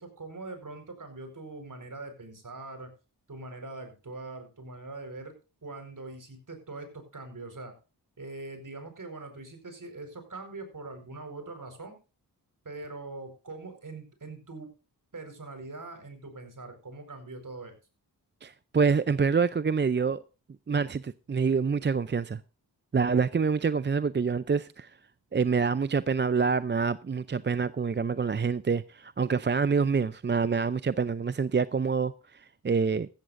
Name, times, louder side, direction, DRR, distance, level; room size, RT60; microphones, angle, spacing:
voice 1, 0.0-2.9 3.3-5.3 5.6-7.7 8.2-12.0 12.6-14.7 15.1-17.7, right 2 dB, 50° right, 4.7 m, -42 dB
voice 2, 18.4-20.2 20.7-22.4 22.9-24.9 25.3-33.1, right 5 dB, 30° right, 0.5 m, -26 dB
15.0 x 14.0 x 2.6 m
cardioid pair, 50°, 40 cm